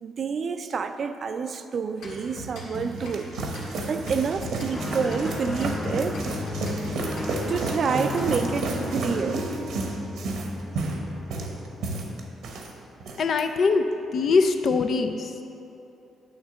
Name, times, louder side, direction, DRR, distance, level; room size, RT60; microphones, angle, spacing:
voice 1, 0.0-3.3 3.9-6.2 6.6-6.7 7.5-9.5 10.5-10.6, right 5 dB, 50° right, 8 dB, 0.4 m, -28 dB
sound 1, 2.0-8.6, left 1 dB, 90° left, 1.8 m, -39 dB
sound 2, 2.8-12.7 13.0-13.4, right 2 dB, 75° right, 0.9 m, -31 dB
Guitar, 4.7-12.4, left 3 dB, 15° left, 0.8 m, -36 dB
voice 2, 13.2-13.8 14.1-15.3, left 4 dB, 60° left, 7 dB, 0.5 m, -22 dB
9.5 x 3.3 x 6.8 m, 2.8 s
cardioid pair, 90°, 0 cm